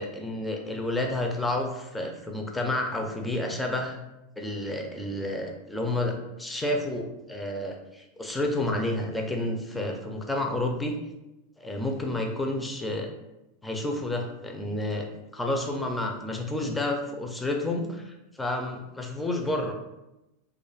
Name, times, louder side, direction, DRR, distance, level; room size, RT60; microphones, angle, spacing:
voice 1, 0.0-4.0 4.4-10.9 11.6-13.1 13.6-15.1 15.3-19.7, left 1 dB, 5° left, 2 dB, 0.4 m, -30 dB
2.3 x 2.1 x 3.2 m, 0.94 s
supercardioid pair, 145°, 0 cm